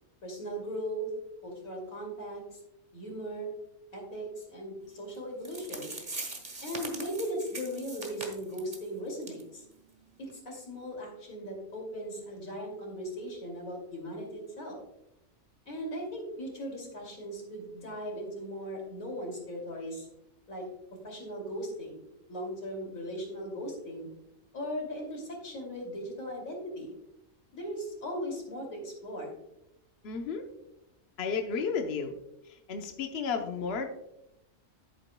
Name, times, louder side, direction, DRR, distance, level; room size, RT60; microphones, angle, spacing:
voice 1, 0.2-1.1 1.4-2.6 2.9-3.5 3.9-5.9 6.6-9.6 10.2-14.8 15.7-20.1 20.5-20.7 21.0-22.0 22.3-24.1 24.5-26.9 27.5-29.3, equal, 85° left, 0 dB, 3.1 m, -38 dB
sound 1, 5.1-5.2 5.4-8.9 9.2-9.4 9.7-9.8 10.3-10.4, right 2 dB, 35° right, 1.6 m, -41 dB
voice 2, 30.0-30.5 31.2-32.2 32.4-33.9, left 5 dB, 55° left, 4 dB, 1.0 m, -33 dB
11.0 x 9.0 x 2.2 m, 0.85 s
omnidirectional pair, 1.4 m